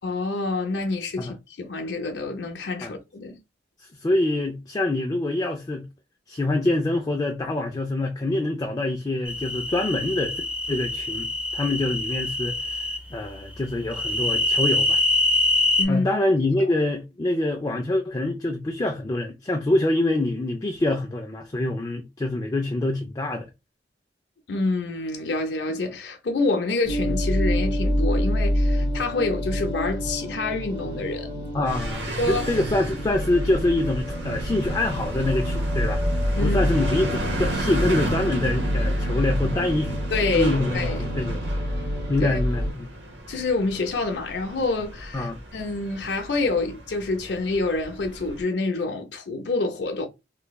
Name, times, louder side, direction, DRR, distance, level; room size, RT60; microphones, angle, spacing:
voice 1, 0.0-3.4 15.8-16.1 24.5-31.5 32.1-32.5 36.3-36.6 40.1-41.1 42.2-42.4 43.3-50.1, left 3 dB, 70° left, 0.6 m, -27 dB
voice 2, 3.8-5.9 6.3-10.4 10.7-15.0 15.9-23.5 31.5-36.0 36.4-40.0 40.3-41.5 42.1-42.9 45.1-45.4, left 2 dB, 20° left, 0.3 m, -25 dB
sound 1, 9.3-13.0 13.9-15.8, left 2 dB, 5° right, 0.8 m, -24 dB
sound 2, 26.9-42.7, equal, 30° right, 1.3 m, -27 dB
sound 3, 31.6-48.4, right 1 dB, 80° right, 1.0 m, -34 dB
3.3 x 3.0 x 2.3 m
head